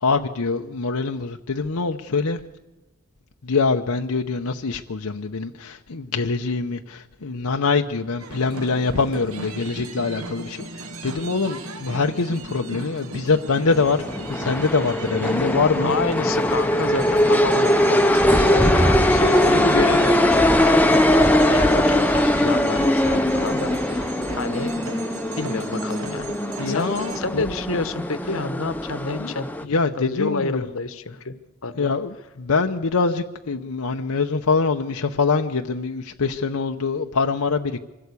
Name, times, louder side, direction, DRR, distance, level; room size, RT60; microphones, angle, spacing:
voice 1, 0.0-2.4 3.4-14.0 14.3-15.9 26.6-27.5 29.2-29.3 29.6-30.6 31.8-37.8, left 4 dB, 85° left, 4 dB, 0.8 m, -24 dB
sound 1, 8.2-27.2, right 2 dB, 70° right, 2.2 m, -37 dB
sound 2, 13.7-29.6, left 1 dB, 5° left, 0.8 m, -20 dB
voice 2, 15.8-21.0 21.3-24.0 24.4-24.7 25.4-26.3 26.6-29.5 30.0-31.3 31.6-31.9, left 3 dB, 65° left, 12 dB, 1.1 m, -29 dB
25.0 x 16.5 x 8.3 m, 1.1 s
head